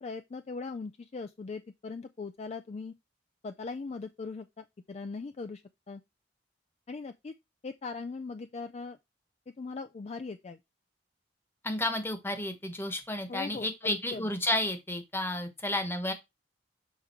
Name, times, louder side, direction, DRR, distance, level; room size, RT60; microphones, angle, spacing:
voice 1, 0.0-2.9 3.4-6.0 6.9-7.3 7.6-9.0 9.5-10.6 13.3-14.3, left 4 dB, 35° left, 0.4 m, -40 dB
voice 2, 11.6-16.1, left 1 dB, 15° left, 1.2 m, -32 dB
7.2 x 3.7 x 4.5 m
head